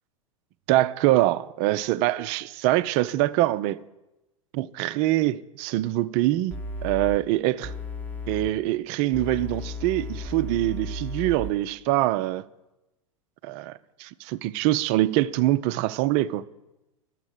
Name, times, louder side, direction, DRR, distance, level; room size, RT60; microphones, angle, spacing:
voice 1, 0.7-3.8 4.5-6.6 6.8-7.7 8.3-12.5 13.4-16.4, right 15 dB, 35° right, 0.4 m, -24 dB
sound 1, 6.5-7.2 7.6-8.5 9.1-11.5, left 1 dB, 10° left, 0.9 m, -34 dB
11.5 x 7.3 x 7.6 m
figure-of-eight pair, 90°, 18 cm